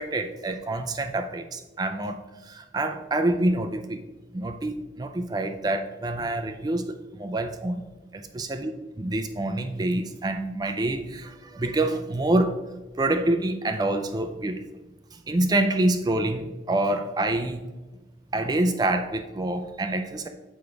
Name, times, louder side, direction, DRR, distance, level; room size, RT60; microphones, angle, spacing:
voice 1, 0.0-4.0 4.3-7.8 8.1-8.7 9.0-14.6 15.1-17.6 18.3-20.3, right 2 dB, 20° right, 0.4 m, -27 dB
6.8 x 5.2 x 4.6 m
head